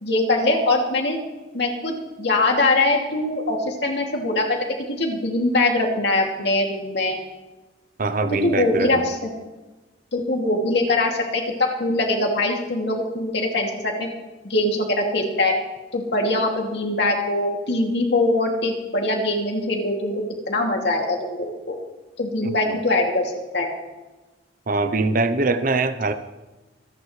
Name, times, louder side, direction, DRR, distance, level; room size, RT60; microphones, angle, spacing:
voice 1, 0.0-1.2 1.5-4.6 4.9-7.2 8.4-9.1 10.1-14.1 14.4-15.5 15.9-21.7 22.2-23.2 23.5-23.7, left 2 dB, 65° left, 0 dB, 2.6 m, -22 dB
voice 2, 8.0-9.0 22.4-22.8 24.7-26.1, right 3 dB, 45° right, 11 dB, 0.7 m, -23 dB
25.5 x 10.5 x 3.3 m, 1.1 s
head